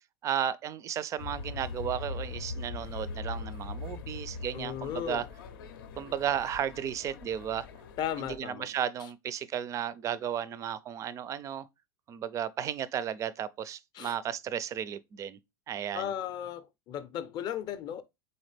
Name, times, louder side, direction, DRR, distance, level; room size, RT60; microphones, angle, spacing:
voice 1, 0.2-5.3 6.0-7.7 8.2-11.7 12.1-15.4 15.7-16.1, right 9 dB, 25° right, 0.3 m, -34 dB
sound 1, 1.2-8.4, left 4 dB, 80° left, 0.6 m, -41 dB
voice 2, 4.5-5.2 8.0-8.7 14.0-14.1 15.9-18.0, left 10 dB, 40° left, 0.5 m, -35 dB
4.0 x 3.8 x 3.3 m
supercardioid pair, 125°, 12 cm